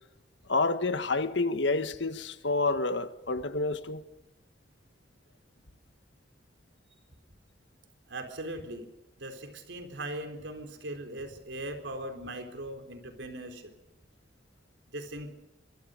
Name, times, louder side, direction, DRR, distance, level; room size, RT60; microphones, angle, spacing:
voice 1, 0.5-4.0, left 3 dB, 75° left, 1.6 m, -28 dB
voice 2, 8.1-8.9 9.2-13.7 14.9-15.3, right 1 dB, 80° right, 3.9 m, -39 dB
24.5 x 24.0 x 5.2 m
head